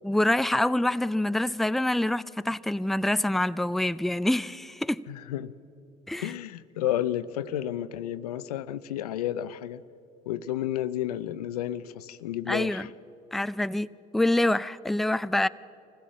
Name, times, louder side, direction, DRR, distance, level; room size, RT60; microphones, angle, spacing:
voice 1, 0.0-5.0 6.1-6.3 12.5-12.9 13.3-15.5, left 1 dB, ahead, 0.5 m, -26 dB
voice 2, 5.1-5.5 6.2-9.8 10.3-12.9, left 12 dB, 90° left, 0.6 m, -31 dB
24.0 x 16.0 x 7.5 m
hypercardioid pair, 65°, 19 cm